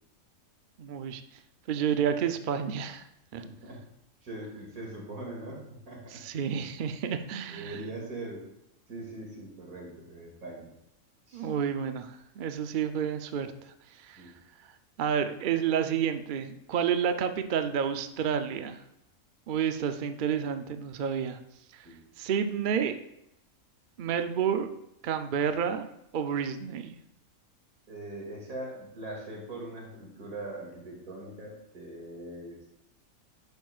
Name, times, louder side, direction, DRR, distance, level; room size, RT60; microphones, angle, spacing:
voice 1, 0.8-1.2 1.7-3.1 3.3-3.4 6.1-7.8 11.3-14.2 15.0-18.8 19.5-21.4 21.7-21.8 22.2-23.0 24.0-24.7 25.0-26.9, right 8 dB, 55° right, 8 dB, 0.5 m, -30 dB
voice 2, 3.4-3.8 4.2-5.6 5.8-6.2 7.5-8.5 8.9-10.7 11.3-11.5 14.2-14.3 21.8-22.0 27.9-32.6, right 1 dB, 80° right, -2 dB, 2.8 m, -41 dB
11.0 x 8.2 x 2.4 m, 0.82 s
omnidirectional pair, 1.5 m